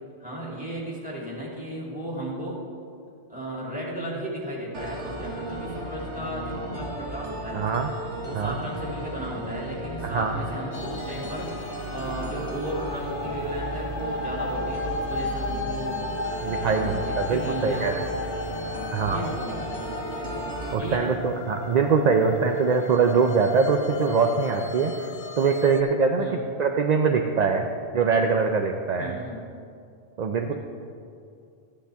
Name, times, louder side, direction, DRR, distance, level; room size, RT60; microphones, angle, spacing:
voice 1, 0.2-2.6 3.3-7.8 8.2-11.6 11.9-16.0 16.6-18.1 18.5-20.4 20.8-21.1 26.2-26.4 29.0-29.5, equal, 5° right, -5 dB, 2.7 m, -35 dB
sound 1, 4.7-20.7, right 1 dB, 80° right, 1.6 m, -35 dB
voice 2, 7.5-7.9 8.3-8.6 10.0-10.3 16.4-17.9 18.9-19.3 20.7-25.1 25.4-27.7 27.9-29.2 30.2-30.5, right 5 dB, 50° right, 4 dB, 0.5 m, -23 dB
sound 2, 10.7-25.8, left 3 dB, 75° left, 0.9 m, -36 dB
13.0 x 10.0 x 3.5 m, 2.5 s
omnidirectional pair, 1.2 m